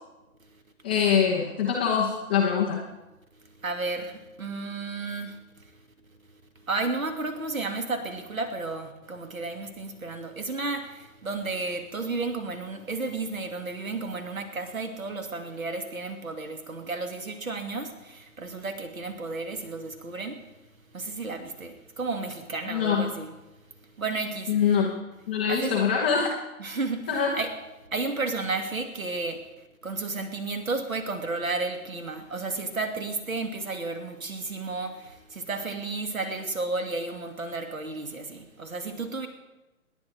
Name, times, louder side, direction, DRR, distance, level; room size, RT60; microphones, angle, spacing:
voice 1, 0.8-2.8 22.7-23.1 24.5-24.9 25.3-26.3 27.1-27.3, left 7 dB, 5° left, -3 dB, 0.5 m, -24 dB
voice 2, 3.6-5.4 6.7-20.4 20.9-23.3 24.0-24.5 25.5-25.7 26.6-27.0 27.3-27.5 27.9-29.4 29.8-39.3, right 3 dB, 65° right, 6 dB, 2.9 m, -32 dB
27.5 x 10.5 x 4.7 m, 1.0 s
figure-of-eight pair, 125°, 43 cm